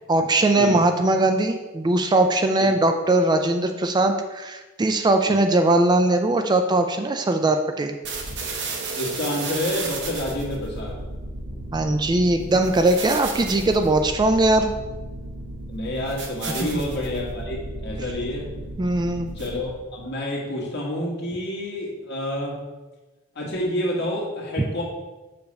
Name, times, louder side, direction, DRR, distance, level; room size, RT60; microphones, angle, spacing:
voice 1, 0.1-8.0 11.7-14.7 16.7-16.8 18.8-19.3, right 2 dB, 20° right, 6 dB, 0.3 m, -20 dB
sound 1, 8.0-19.8, right 2 dB, 60° right, 1.0 m, -33 dB
voice 2, 9.0-11.0 15.7-18.5 19.3-22.6 23.4-24.8, left 1 dB, 55° left, -3 dB, 1.8 m, -28 dB
6.9 x 3.4 x 5.2 m, 1.2 s
head